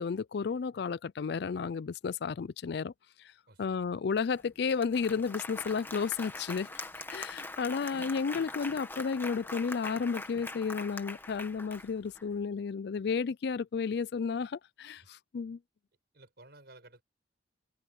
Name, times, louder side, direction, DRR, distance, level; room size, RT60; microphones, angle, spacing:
voice 1, 0.0-2.9 3.6-15.6, left 5 dB, 65° left, 0.4 m, -32 dB
voice 2, 3.5-3.9 11.7-11.8 15.0-15.1 16.1-17.0, right 2 dB, 65° right, 6.3 m, -56 dB
Applause, 4.3-4.4 4.7-12.2, left 2 dB, 10° left, 1.6 m, -42 dB
head